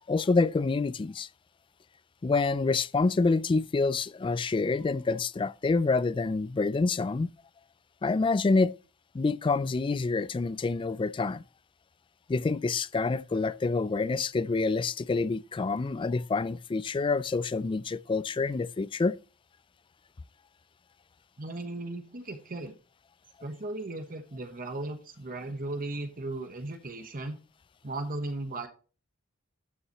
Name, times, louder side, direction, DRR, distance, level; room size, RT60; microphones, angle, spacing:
voice 1, 0.1-1.3 2.2-7.3 8.0-8.7 9.1-11.4 12.3-19.2, left 3 dB, 25° left, 0.3 m, -27 dB
voice 2, 21.4-22.7 23.4-27.4 27.8-28.7, right 2 dB, 40° right, 1.1 m, -36 dB
12.5 x 7.1 x 3.0 m
head